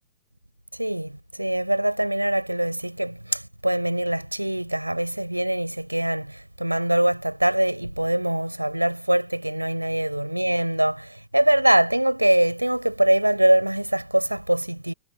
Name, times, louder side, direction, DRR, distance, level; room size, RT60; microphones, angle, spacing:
voice 1, 0.8-14.9, right 1 dB, 85° right, 6.3 m, -23 dB
figure-of-eight pair, 90°, 0 cm